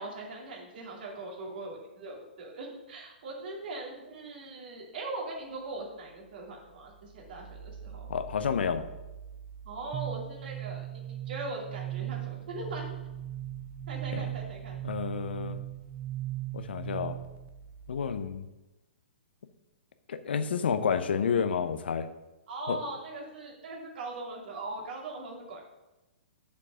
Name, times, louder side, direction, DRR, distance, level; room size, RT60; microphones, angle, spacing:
voice 1, 0.0-8.1 9.6-12.9 13.9-14.8 22.5-25.6, right 2 dB, 60° right, -1 dB, 2.6 m, -40 dB
sound 1, 5.3-18.2, right 6 dB, 20° left, 2.1 m, -50 dB
voice 2, 8.1-8.8 14.1-14.3 14.8-15.6 16.5-17.2 17.9-18.5 20.1-22.1 22.7-22.8, left 6 dB, 70° left, 10 dB, 0.8 m, -30 dB
sound 2, 9.9-17.5, right 14 dB, 20° right, 0.4 m, -38 dB
6.8 x 5.4 x 6.3 m, 1.0 s
hypercardioid pair, 125°, 6 cm